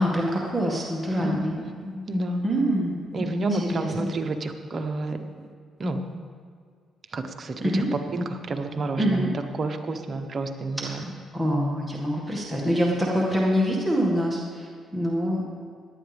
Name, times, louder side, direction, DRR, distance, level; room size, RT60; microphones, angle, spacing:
voice 1, 0.0-1.5 2.4-3.0 3.5-4.1 7.6-7.9 9.0-9.3 10.9-11.0 11.3-15.5, equal, 5° right, -4 dB, 2.0 m, -25 dB
voice 2, 1.1-2.5 3.1-5.5 5.8-6.0 7.1-7.8 8.1-9.2 9.5-11.0, right 2 dB, 40° right, 5 dB, 1.2 m, -30 dB
17.5 x 11.0 x 3.5 m, 2.1 s
cardioid pair, 90°, 0 cm